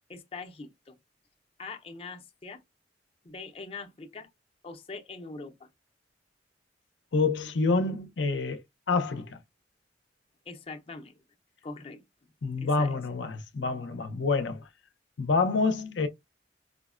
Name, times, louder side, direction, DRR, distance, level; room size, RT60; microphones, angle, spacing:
voice 1, 0.1-1.0 1.6-2.6 3.2-4.3 4.6-5.7 10.5-11.2 11.6-12.0 12.6-13.0, left 3 dB, 35° left, 0.5 m, -42 dB
voice 2, 7.1-8.6 8.9-9.4 12.4-14.6 15.2-16.1, left 4 dB, 85° left, 0.6 m, -27 dB
5.0 x 2.1 x 2.4 m
head